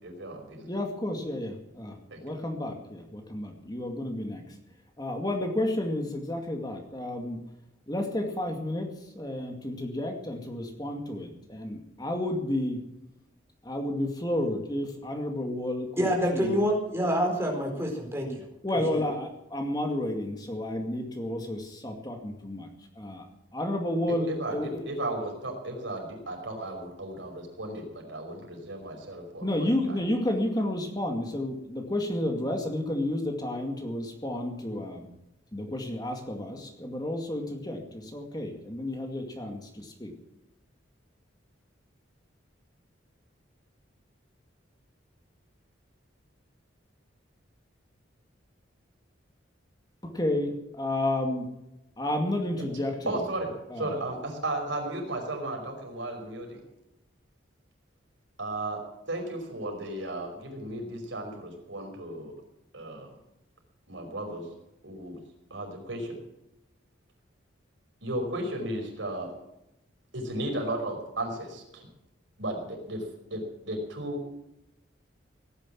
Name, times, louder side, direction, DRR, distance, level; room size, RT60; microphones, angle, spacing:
voice 1, 0.0-0.7 2.1-2.2 24.1-30.0 53.1-56.6 58.4-58.8 59.1-62.3 62.7-63.1 63.9-64.4 64.8-65.2 65.5-66.2 68.0-69.3 70.1-71.9 72.4-73.0 73.3-74.2, right 1 dB, 70° right, 2 dB, 5.4 m, -35 dB
voice 2, 0.7-4.6 5.0-7.4 7.9-12.8 13.6-16.6 18.6-22.7 23.0-23.2 23.5-24.9 29.4-35.1 35.5-40.1 50.0-51.5 52.0-53.3 53.7-54.0, left 1 dB, 20° left, 3 dB, 2.2 m, -31 dB
voice 3, 16.0-18.4 18.9-19.0, equal, 15° right, 0 dB, 4.6 m, -27 dB
17.5 x 10.5 x 7.5 m, 0.86 s
head